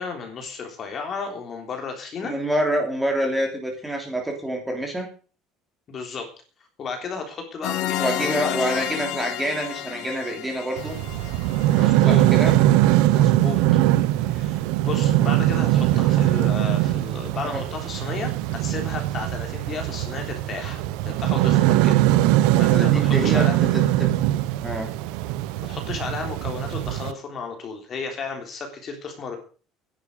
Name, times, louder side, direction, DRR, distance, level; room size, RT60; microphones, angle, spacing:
voice 1, 0.0-2.4 5.9-6.3 6.8-8.8 11.7-12.2 13.1-13.6 14.3-22.0 22.6-23.6 25.6-29.4, left 5 dB, 30° left, 3 dB, 3.4 m, -33 dB
voice 2, 2.2-5.1 8.0-11.0 12.0-12.5 17.4-17.6 22.7-24.1 24.6-24.9, equal, 5° right, 2 dB, 3.2 m, -27 dB
sound 1, 7.6-12.3, left 14 dB, 55° left, 1.1 m, -31 dB
sound 2, 10.8-27.1, right 14 dB, 80° right, 0.9 m, -21 dB
12.5 x 10.5 x 6.6 m, 0.39 s
cardioid pair, 165°, 0 cm